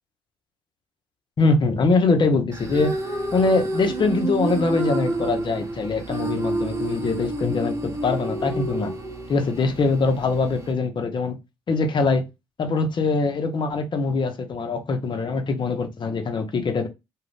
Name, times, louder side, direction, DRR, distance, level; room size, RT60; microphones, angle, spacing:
voice 1, 1.4-2.9 3.3-8.9 9.3-11.3 11.7-12.2 12.6-16.9, left 3 dB, 40° left, 0.7 m, -23 dB
sound 1, 2.5-10.7, right 2 dB, 25° right, 0.9 m, -29 dB
2.5 x 2.3 x 3.3 m
hypercardioid pair, 50°, 12 cm